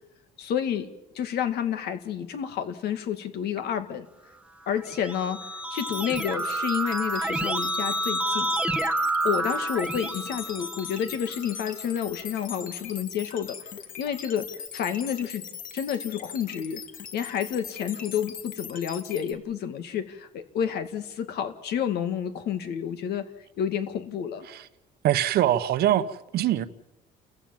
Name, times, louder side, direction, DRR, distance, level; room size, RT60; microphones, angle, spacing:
voice 1, 0.4-0.9 1.1-4.1 4.7-8.5 9.2-13.6 14.0-15.4 15.7-16.8 17.1-23.3 23.6-24.5, left 8 dB, 75° left, 2.2 m, -30 dB
Keyboard (musical), 4.7-11.4, right 1 dB, 5° right, 1.2 m, -29 dB
sound 1, 5.8-19.3, left 7 dB, 55° left, 2.5 m, -40 dB
voice 2, 25.0-26.6, right 12 dB, 70° right, 1.1 m, -23 dB
29.5 x 15.0 x 7.4 m
cardioid pair, 110°, 17 cm